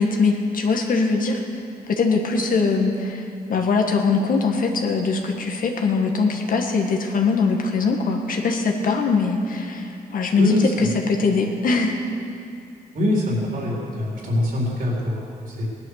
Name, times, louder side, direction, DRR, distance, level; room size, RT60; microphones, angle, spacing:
voice 1, 0.0-1.4 1.9-3.2 3.5-12.0, left 4 dB, 65° left, 2 dB, 1.7 m, -22 dB
voice 2, 10.4-10.9 12.9-15.6, left 1 dB, 65° right, -3 dB, 4.3 m, -23 dB
17.5 x 11.5 x 6.6 m, 2.5 s
cardioid pair, 115°, 16 cm